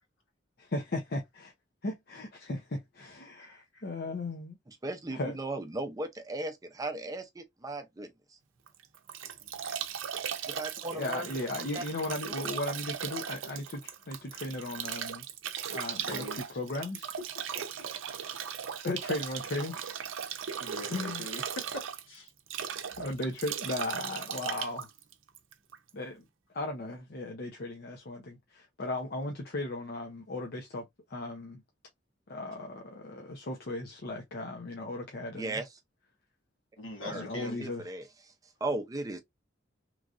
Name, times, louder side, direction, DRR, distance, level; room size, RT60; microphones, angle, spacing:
voice 1, 0.6-1.5 1.8-4.6 5.1-5.4 10.9-15.2 15.7-16.2 16.6-17.1 18.8-19.9 20.9-21.3 23.0-24.9 25.9-26.2 26.5-30.8 31.1-31.6 32.3-35.6 37.1-37.8, left 2 dB, 55° left, 0.6 m, -36 dB
voice 2, 3.4-3.8 16.0-16.4 17.5-17.6 18.2-18.4 20.6-22.3 36.8-37.6, left 1 dB, 80° left, 1.5 m, -43 dB
voice 3, 4.7-8.1 10.5-11.4 11.7-11.8 12.2-12.3 35.3-35.7 37.0-38.0 38.6-39.2, right 2 dB, 20° right, 0.5 m, -36 dB
Bathtub (filling or washing) / Drip / Trickle dribble, 8.7-25.9, right 8 dB, 85° right, 0.6 m, -38 dB
3.1 x 2.5 x 2.4 m
head